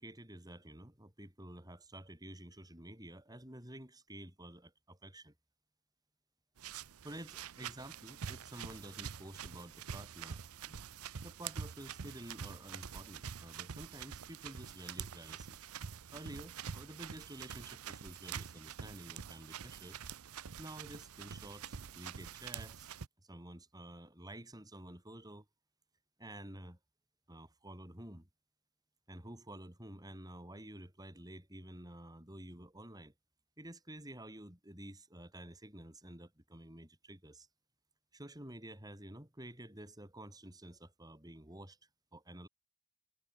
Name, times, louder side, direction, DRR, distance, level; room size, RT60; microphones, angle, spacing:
voice 1, 0.0-5.3 7.0-10.8 11.2-15.6 16.1-20.0 20.6-22.9 23.2-25.5 26.2-26.8 27.3-28.3 29.1-33.1 33.6-37.5 38.1-41.8 42.1-42.5, right 1 dB, 15° right, 4.1 m, -50 dB
sound 1, 6.6-23.1, right 7 dB, 85° right, 0.7 m, -46 dB
head